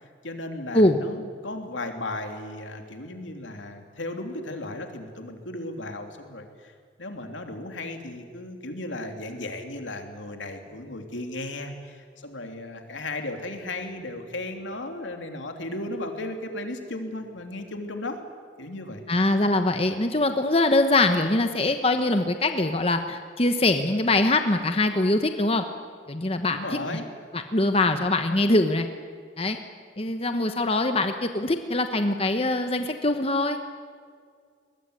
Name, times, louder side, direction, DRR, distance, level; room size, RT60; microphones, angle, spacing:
voice 1, 0.2-6.7 7.0-18.2 18.6-19.0 26.5-27.0, left 2 dB, 85° left, 4 dB, 3.2 m, -35 dB
voice 2, 19.1-25.6 26.1-26.6 27.3-28.9 29.4-29.6 30.0-33.6, left 2 dB, 30° left, 7 dB, 1.1 m, -23 dB
22.5 x 21.0 x 9.9 m, 2.1 s
head